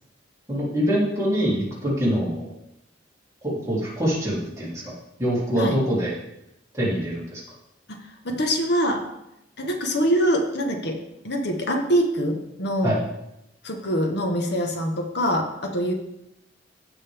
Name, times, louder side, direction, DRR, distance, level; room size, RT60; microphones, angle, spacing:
voice 1, 0.5-2.5 3.4-4.9 5.2-6.1 6.7-7.4 12.8-13.0, equal, 15° right, -7 dB, 3.0 m, -24 dB
voice 2, 7.9-9.1 9.6-11.0 11.2-13.0 13.6-15.9, equal, 60° left, 3 dB, 1.2 m, -24 dB
15.5 x 5.4 x 3.5 m, 0.85 s
head